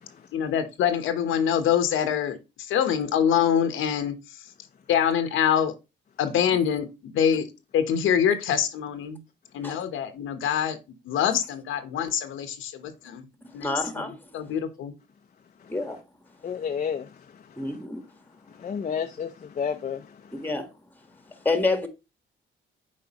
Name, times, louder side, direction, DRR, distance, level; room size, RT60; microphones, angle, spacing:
voice 1, 0.3-4.4 4.9-5.7 6.2-7.5 7.7-9.2 9.5-10.8 11.0-13.3 13.5-14.9, left 9 dB, 80° left, 1.0 m, -25 dB
voice 2, 13.6-14.3 15.7-16.0 17.6-18.0 20.3-20.7 21.4-21.9, left 3 dB, 10° left, 1.4 m, -28 dB
voice 3, 16.4-17.6 18.5-20.4, left 7 dB, 40° left, 0.6 m, -32 dB
7.6 x 4.7 x 2.9 m
cardioid pair, 90°, 20 cm